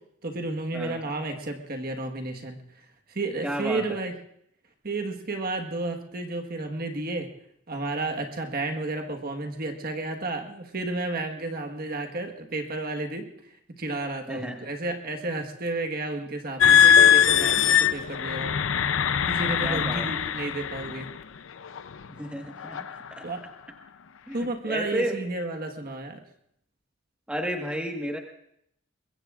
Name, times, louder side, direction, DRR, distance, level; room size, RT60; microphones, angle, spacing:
voice 1, 0.2-2.6 3.1-4.1 4.8-7.3 7.7-13.3 13.8-18.5 19.3-21.1 23.2-23.4 24.3-26.2, right 2 dB, 50° right, 4 dB, 1.4 m, -32 dB
voice 2, 3.4-3.8 14.3-14.6 19.6-20.1 22.2-22.8 23.1-23.3 24.3-25.1 27.3-28.2, equal, 5° right, 1 dB, 1.5 m, -32 dB
sound 1, 16.6-21.1 21.8-22.0 22.6-22.9, left 9 dB, 80° left, 0.5 m, -21 dB
22.5 x 22.0 x 2.5 m, 0.74 s
head